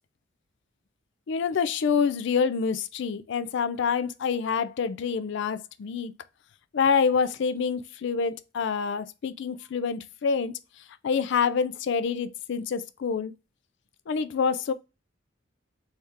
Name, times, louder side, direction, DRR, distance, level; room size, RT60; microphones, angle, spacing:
voice 1, 1.3-6.1 6.7-10.5 11.0-13.3 14.1-14.7, left 6 dB, 65° left, 0.4 m, -27 dB
3.5 x 2.8 x 3.3 m
head